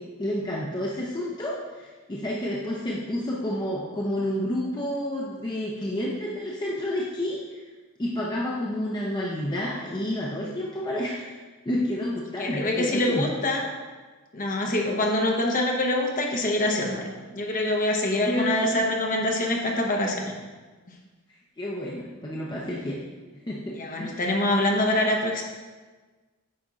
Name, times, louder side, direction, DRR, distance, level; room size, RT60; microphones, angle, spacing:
voice 1, 0.0-7.4 8.0-11.4 11.7-13.3 18.3-18.8 21.6-23.0 23.5-24.2, left 1 dB, 20° left, -4 dB, 0.6 m, -30 dB
voice 2, 12.4-13.7 14.3-17.0 17.3-20.3 23.7-25.4, left 1 dB, 40° left, 0 dB, 0.9 m, -25 dB
8.6 x 5.3 x 2.4 m, 1.3 s
head